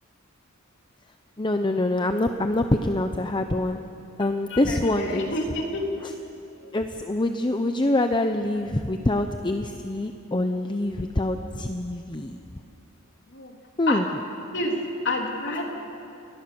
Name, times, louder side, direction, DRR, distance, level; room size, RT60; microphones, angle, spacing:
voice 1, 1.4-3.8 4.2-5.3 6.7-12.4 13.8-14.0, left 1 dB, 20° left, 6 dB, 0.8 m, -25 dB
voice 2, 4.2-6.2 6.6-6.7 13.3-13.6 13.9-14.0 14.5-14.8 15.0-15.6, left 2 dB, 60° left, 1 dB, 3.3 m, -29 dB
29.5 x 20.0 x 7.0 m, 2.8 s
head